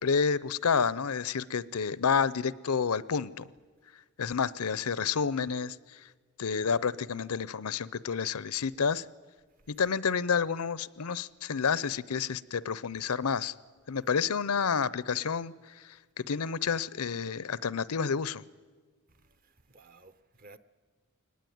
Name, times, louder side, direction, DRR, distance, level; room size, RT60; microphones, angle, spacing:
voice 1, 0.0-3.5 4.2-6.0 6.4-9.0 9.7-13.5 13.9-18.4, left 6 dB, 85° left, 0.6 m, -29 dB
voice 2, 19.1-20.6, right 3 dB, 40° right, 0.8 m, -57 dB
23.0 x 19.5 x 9.4 m
head